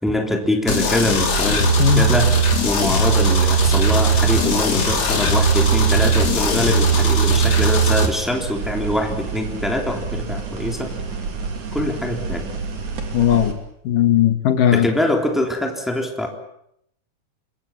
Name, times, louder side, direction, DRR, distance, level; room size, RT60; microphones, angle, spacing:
voice 1, 0.0-2.4 2.6-11.0 11.7-12.5 14.7-16.3, left 1 dB, ahead, 2 dB, 2.9 m, -23 dB
sound 1, 0.7-8.1, right 2 dB, 40° left, 4.0 m, -18 dB
sound 2, 1.3-13.5, right 5 dB, 50° right, 4.0 m, -29 dB
voice 2, 13.1-13.6 13.9-14.9, left 11 dB, 65° left, 9 dB, 2.6 m, -17 dB
26.0 x 23.0 x 7.5 m, 0.74 s
omnidirectional pair, 4.7 m